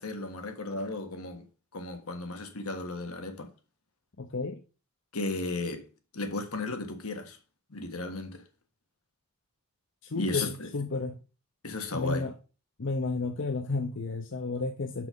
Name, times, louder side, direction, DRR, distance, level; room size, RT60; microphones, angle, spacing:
voice 1, 0.0-1.4 1.7-3.5 5.1-5.9 6.1-7.4 7.7-8.4 10.1-10.7 11.6-12.3, left 2 dB, 85° left, 1.5 m, -34 dB
voice 2, 4.2-4.6 10.0-11.2 11.9-12.3 12.8-15.1, left 3 dB, 55° left, 0.6 m, -32 dB
5.9 x 5.8 x 5.3 m
head